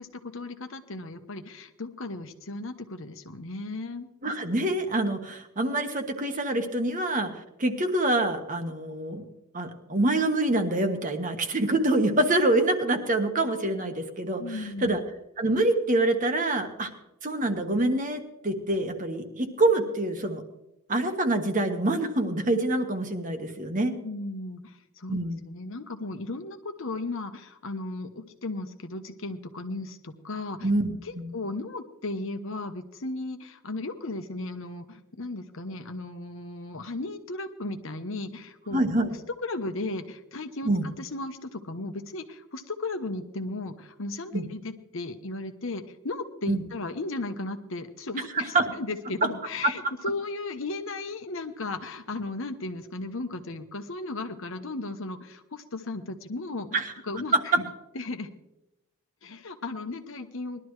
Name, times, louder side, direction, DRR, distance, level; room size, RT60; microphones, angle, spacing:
voice 1, 0.0-4.1 14.4-15.0 24.0-25.2 25.4-30.7 31.0-38.8 39.4-56.7 57.0-57.6 57.9-58.3 59.2-60.6, left 2 dB, 60° left, 8 dB, 1.0 m, -35 dB
voice 2, 4.2-7.3 7.6-9.2 9.5-15.0 15.4-16.9 17.2-20.4 20.9-24.0 25.1-25.4 30.6-31.3 38.7-39.1 40.6-40.9 44.3-44.4 46.5-46.6 48.3-48.6 49.2-49.3 56.7-56.9 57.3-57.6, right 2 dB, 35° right, 5 dB, 1.3 m, -26 dB
20.0 x 12.0 x 3.2 m, 0.88 s
head